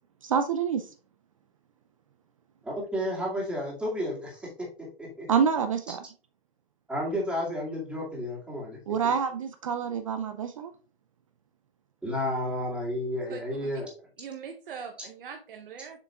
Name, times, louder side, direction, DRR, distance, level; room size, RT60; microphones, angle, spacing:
voice 1, 0.2-0.9 5.3-6.0 8.9-10.7, right 7 dB, 35° right, 0.4 m, -27 dB
voice 2, 2.6-4.5 4.8-5.3 6.9-8.8 12.0-13.9, left 1 dB, 5° right, 2.1 m, -31 dB
voice 3, 13.3-13.7 14.2-16.0, right 6 dB, 55° right, 1.0 m, -42 dB
6.9 x 6.6 x 2.3 m
hypercardioid pair, 135°, 31 cm